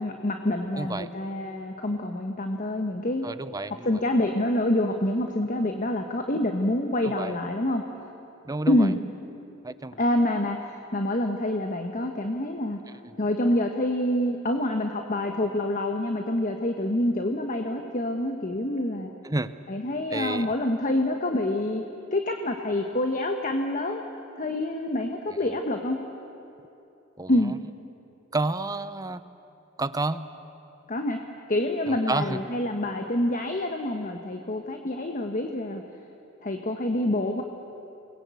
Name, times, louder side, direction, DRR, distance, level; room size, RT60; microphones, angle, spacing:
voice 1, 0.0-3.3 3.7-7.8 8.7-9.0 10.0-12.8 13.2-19.1 19.7-21.8 22.1-24.0 24.4-26.0 27.3-27.5 30.9-31.2 31.5-35.8 36.4-37.4, left 1 dB, 40° left, 4 dB, 1.2 m, -27 dB
voice 2, 0.8-1.1 3.2-3.9 7.0-7.3 8.4-8.8 9.6-10.0 19.2-19.5 20.1-20.5 27.2-27.3 28.3-29.2 29.8-30.3 31.9-32.4, right 2 dB, 20° right, 13 dB, 0.7 m, -30 dB
28.5 x 21.0 x 8.3 m, 2.9 s
head